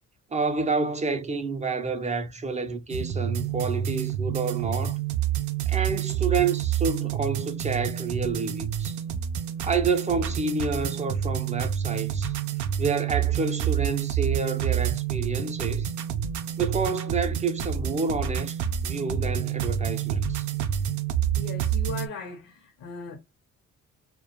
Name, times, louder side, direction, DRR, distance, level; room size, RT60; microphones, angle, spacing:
voice 1, 0.3-5.0 5.7-9.0 9.6-12.3 12.8-15.9 16.6-18.6 18.8-20.5, right 4 dB, 25° right, 0.4 m, -29 dB
sound 1, 2.9-22.1, right 9 dB, 80° right, 0.5 m, -28 dB
voice 2, 21.3-23.2, left 5 dB, 75° left, 0.7 m, -38 dB
2.3 x 2.1 x 2.8 m
cardioid pair, 90°, 30 cm